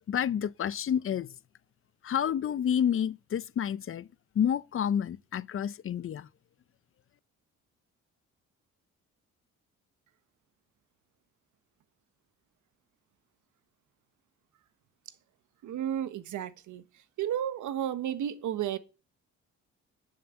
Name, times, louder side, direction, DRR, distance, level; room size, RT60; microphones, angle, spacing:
voice 1, 0.1-1.3 2.0-4.1 4.4-6.3, left 9 dB, 45° left, 0.6 m, -29 dB
voice 2, 15.6-16.8 17.2-18.8, right 10 dB, 75° right, 1.3 m, -32 dB
11.5 x 6.6 x 7.8 m
cardioid pair, 90°, 30 cm